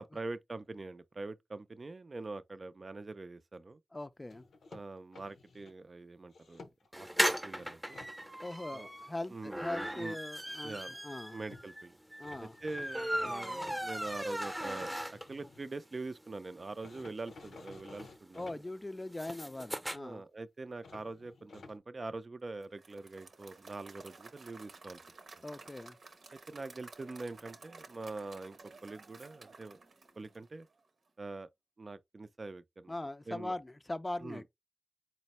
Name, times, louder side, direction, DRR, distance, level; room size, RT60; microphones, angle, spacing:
voice 1, 0.0-3.8 4.7-6.6 6.9-8.0 8.7-8.9 9.3-9.5 9.9-10.2 10.6-10.9 11.3-12.0 12.4-18.4 19.9-25.0 26.5-29.8 30.2-30.7 31.2-31.5 31.8-32.9 33.3-33.6 34.2-34.4, right 3 dB, 50° right, 0.4 m, -44 dB
voice 2, 3.9-4.4 8.4-11.4 12.2-12.6 18.3-20.2 25.4-26.0 32.9-34.5, left 2 dB, 30° left, 0.4 m, -41 dB
sound 1, 4.3-5.7 6.3-7.1 7.6-8.1 11.2-11.3 11.5-11.7 12.2-15.7 16.8-18.6 20.8-21.8, left 3 dB, 85° left, 0.6 m, -54 dB
sound 2, 6.9-15.5 15.9-16.0 16.2-16.3 16.6-20.0, equal, 5° right, 0.7 m, -37 dB
Applause / Crowd, 22.6-30.8, right 3 dB, 75° right, 0.8 m, -54 dB
4.2 x 2.0 x 4.2 m
cardioid pair, 40°, 0 cm